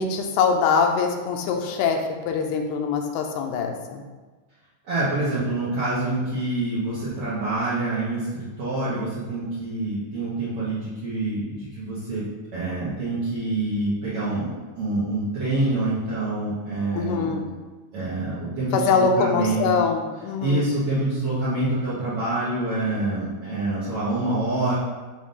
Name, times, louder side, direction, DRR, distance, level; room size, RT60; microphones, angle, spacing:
voice 1, 0.0-4.0 16.9-17.4 18.7-20.7, left 5 dB, 90° left, 3 dB, 2.7 m, -23 dB
voice 2, 4.9-12.2 12.5-14.5 14.8-17.4 17.9-19.7 20.4-24.7, right 2 dB, 80° right, -10 dB, 1.3 m, -26 dB
7.1 x 2.5 x 5.4 m, 1.3 s
omnidirectional pair, 4.5 m